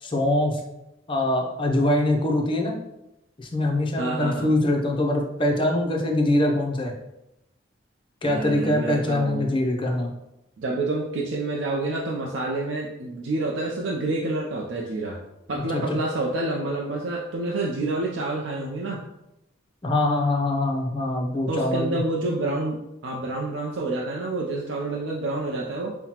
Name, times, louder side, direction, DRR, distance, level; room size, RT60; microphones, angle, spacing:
voice 1, 0.0-0.6 1.1-2.7 3.4-6.9 8.2-10.1 15.5-16.0 19.8-22.0, left 1 dB, 25° left, 1 dB, 0.5 m, -23 dB
voice 2, 4.0-4.5 8.2-9.5 10.6-15.2 15.5-19.0 21.5-26.0, right 2 dB, 65° right, -2 dB, 0.5 m, -28 dB
5.6 x 2.1 x 2.9 m, 0.90 s
head